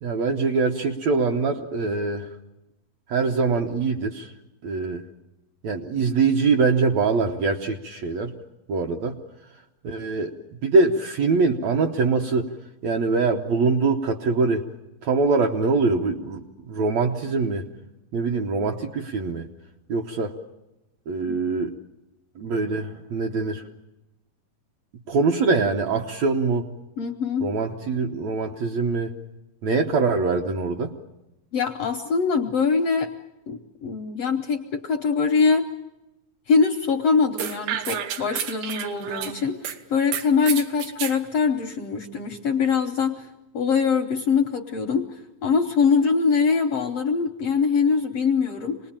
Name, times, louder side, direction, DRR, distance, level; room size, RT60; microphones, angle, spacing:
voice 1, 0.0-2.3 3.1-4.3 4.6-5.1 5.6-8.3 8.7-9.2 9.8-10.3 10.6-12.5 12.8-14.7 15.0-17.7 18.1-19.5 19.9-20.3 21.1-21.7 22.4-23.6 25.1-26.7 27.4-29.1 29.6-30.9, right 4 dB, 65° right, 3 dB, 1.8 m, -23 dB
voice 2, 27.0-27.5 31.5-33.1 33.5-35.7 36.5-43.3 43.5-48.8, left 5 dB, 70° left, 5 dB, 1.5 m, -23 dB
sound 1, 37.4-39.8 40.1-41.2, right 9 dB, 90° right, 3.1 m, -30 dB
26.5 x 20.0 x 8.8 m, 0.97 s
omnidirectional pair, 4.1 m